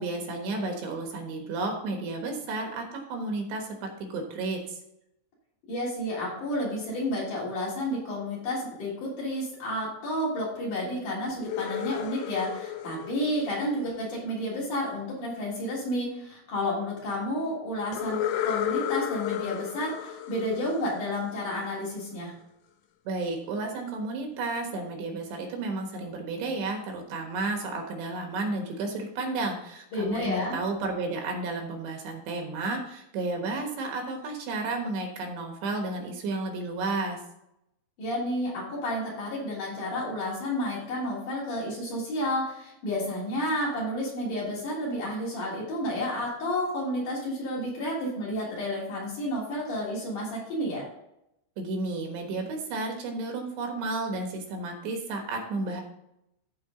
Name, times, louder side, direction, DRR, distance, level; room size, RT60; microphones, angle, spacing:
voice 1, 0.0-4.8 23.1-37.2 51.6-55.8, right 3 dB, 70° right, 2 dB, 3.3 m, -32 dB
voice 2, 5.7-22.3 29.9-30.6 38.0-50.9, left 1 dB, 45° left, -6 dB, 4.3 m, -31 dB
sound 1, 11.3-14.3 17.9-21.6, left 11 dB, 80° left, 2.4 m, -33 dB
14.5 x 5.1 x 3.7 m, 0.82 s
omnidirectional pair, 5.4 m